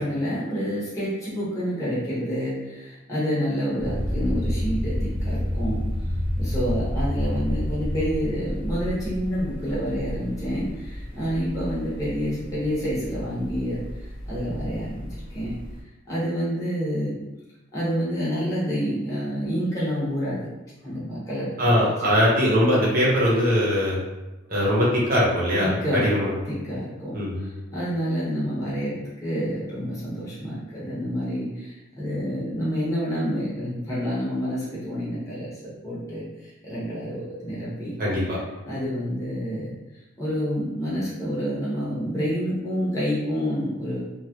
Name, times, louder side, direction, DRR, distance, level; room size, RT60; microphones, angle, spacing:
voice 1, 0.0-5.8 6.4-15.5 16.0-17.1 17.7-20.4 20.8-22.1 25.6-26.1 26.5-27.1 27.4-37.9 38.6-39.7 40.2-44.0, equal, 15° left, -9 dB, 1.1 m, -28 dB
sound 1, 3.8-15.8, equal, 25° right, 0.6 m, -30 dB
voice 2, 21.6-24.0 24.5-26.3 27.1-27.5 38.0-38.4, equal, 45° right, -5 dB, 0.9 m, -21 dB
3.0 x 2.4 x 2.9 m, 1.0 s
head